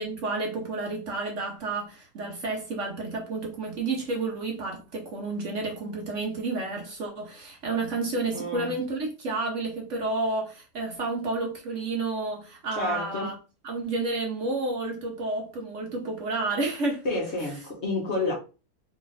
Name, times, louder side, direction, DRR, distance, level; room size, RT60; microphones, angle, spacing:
voice 1, 0.0-13.4 13.6-17.1, right 3 dB, 60° right, 1.0 m, -30 dB
voice 2, 8.3-8.8 12.7-13.3 17.0-18.3, left 2 dB, 50° left, 1.1 m, -29 dB
3.2 x 2.4 x 4.0 m
omnidirectional pair, 1.7 m